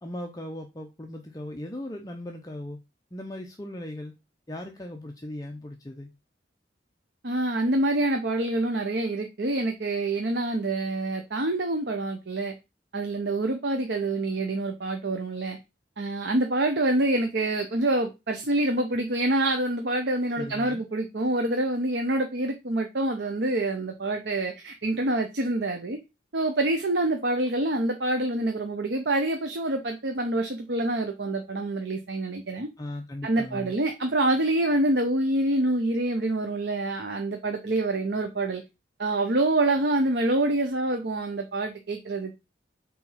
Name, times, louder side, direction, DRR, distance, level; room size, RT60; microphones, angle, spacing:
voice 1, 0.0-2.8 3.1-4.2 4.5-6.1 20.4-20.8 32.8-33.8, left 1 dB, 20° left, 0.6 m, -38 dB
voice 2, 7.2-12.5 12.9-15.6 16.0-26.0 26.3-32.7 33.2-38.6 39.0-42.4, right 2 dB, 65° right, 0.8 m, -26 dB
4.7 x 4.2 x 5.6 m
head